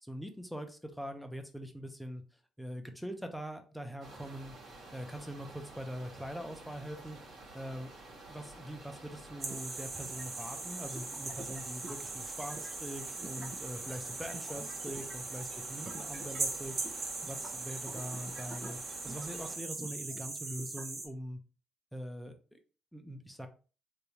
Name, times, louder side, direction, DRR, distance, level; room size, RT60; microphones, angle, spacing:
voice 1, 0.0-2.2 2.6-4.5 4.9-7.9 8.3-21.4 21.9-22.3 22.9-23.5, equal, ahead, 5 dB, 0.7 m, -43 dB
sound 1, 4.0-19.6, right 2 dB, 70° right, 1.5 m, -51 dB
sound 2, 9.4-21.1, right 3 dB, 40° right, 0.9 m, -40 dB
3.3 x 2.7 x 3.0 m, 0.35 s
cardioid pair, 90°, 0 cm